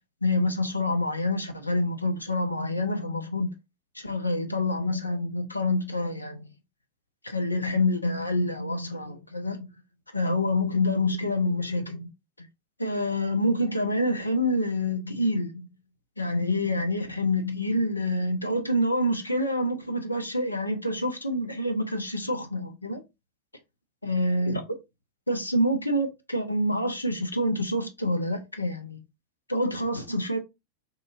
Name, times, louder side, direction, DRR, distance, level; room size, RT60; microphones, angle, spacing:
voice 1, 0.2-3.5 4.0-6.5 7.2-9.7 10.1-12.1 12.4-12.5 12.8-15.7 16.2-23.0 24.0-24.8 25.3-29.0 29.5-30.4, left 1 dB, 80° left, 0.5 m, -27 dB
2.8 x 2.6 x 2.3 m
figure-of-eight pair, 90°, 0 cm